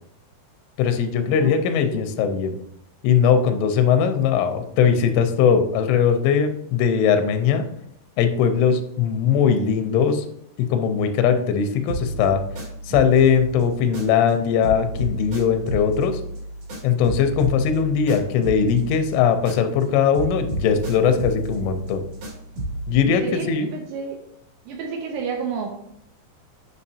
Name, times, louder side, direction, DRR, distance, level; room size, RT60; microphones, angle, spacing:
voice 1, 0.8-2.6 3.0-7.6 8.2-10.2 10.7-12.4 12.9-16.2 16.8-22.0 22.9-23.2 23.5-23.7, left 7 dB, 90° left, 8 dB, 3.2 m, -20 dB
sound 1, 11.9-14.4 14.6-19.9 20.1-22.9, right 1 dB, 50° right, 2.7 m, -31 dB
voice 2, 23.0-24.2 24.7-25.7, right 5 dB, 80° right, 2 dB, 2.7 m, -30 dB
9.5 x 5.5 x 2.7 m, 0.72 s
omnidirectional pair, 5.4 m